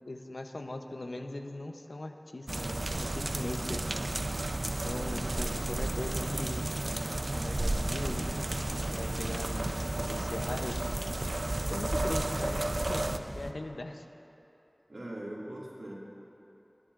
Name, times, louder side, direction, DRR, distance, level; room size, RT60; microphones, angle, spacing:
voice 1, 0.1-3.8 4.1-4.2 4.8-6.6 7.3-8.3 8.7-10.9 11.7-14.0, left 2 dB, 85° left, 5 dB, 0.7 m, -40 dB
sound 1, 2.5-13.2, right 2 dB, 65° right, 0.5 m, -33 dB
sound 2, 4.1-9.4, right 1 dB, 25° right, 0.8 m, -46 dB
voice 2, 5.0-5.3 14.9-15.9, right 1 dB, 90° right, -5 dB, 2.1 m, -41 dB
sound 3, 7.3-13.5, equal, ahead, 0.7 m, -41 dB
29.0 x 10.5 x 2.5 m, 3.0 s
wide cardioid pair, 50°, 0 cm